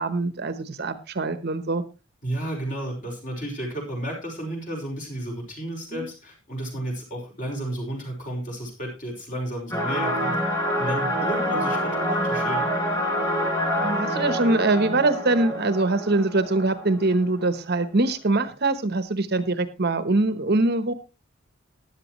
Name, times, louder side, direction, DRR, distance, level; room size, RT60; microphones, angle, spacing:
voice 1, 0.0-1.8 5.9-6.1 13.8-20.9, right 2 dB, 50° right, 12 dB, 1.0 m, -23 dB
voice 2, 2.2-10.4 10.8-12.7, right 1 dB, 40° left, 0 dB, 5.5 m, -32 dB
sound 1, 9.7-17.2, equal, 20° left, 5.3 m, -26 dB
15.5 x 11.0 x 3.1 m, 0.28 s
head